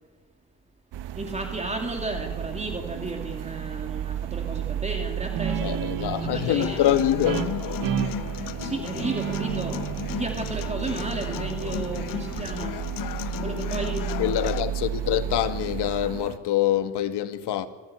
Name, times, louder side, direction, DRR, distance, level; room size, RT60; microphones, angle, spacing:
sound 1, 0.9-16.4, right 11 dB, 80° right, 1.3 m, -33 dB
voice 1, 1.1-6.8 8.5-12.7 13.4-14.1, right 2 dB, 15° right, 2.6 m, -33 dB
Guitar, 5.3-12.5, right 8 dB, 55° right, 1.6 m, -33 dB
voice 2, 5.6-7.5 14.2-17.7, left 12 dB, 75° left, 1.8 m, -25 dB
Human voice / Acoustic guitar, 6.6-14.6, left 12 dB, 55° left, 0.7 m, -35 dB
26.5 x 14.5 x 10.0 m
cardioid pair, 145°, 41 cm